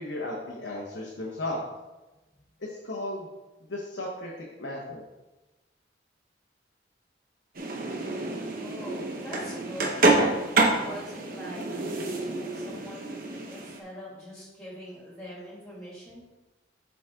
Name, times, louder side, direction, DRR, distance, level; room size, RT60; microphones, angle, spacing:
voice 1, 0.0-1.6 2.6-3.3 3.7-4.3 4.6-5.1, left 1 dB, 85° left, -3 dB, 1.2 m, -35 dB
sound 1, 7.5-13.8, right 2 dB, 50° right, 1.0 m, -27 dB
voice 2, 8.6-10.0 10.7-16.3, equal, 5° left, -6 dB, 2.5 m, -43 dB
9.0 x 4.2 x 3.7 m, 1.1 s
head